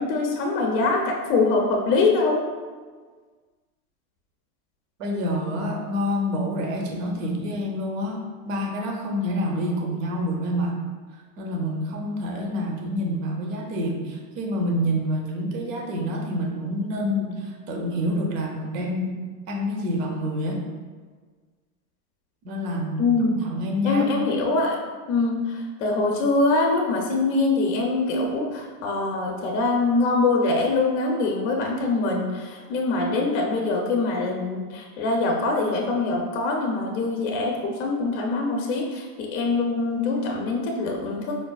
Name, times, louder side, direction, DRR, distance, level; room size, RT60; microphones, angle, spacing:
voice 1, 0.0-2.4 23.0-23.3 23.8-24.8 25.1-41.4, left 3 dB, 50° left, 0 dB, 0.5 m, -23 dB
voice 2, 5.0-10.8 11.4-19.2 19.5-20.7 22.4-24.1, equal, 55° right, 2 dB, 0.7 m, -27 dB
4.6 x 2.4 x 2.2 m, 1.5 s
supercardioid pair, 155°, 47 cm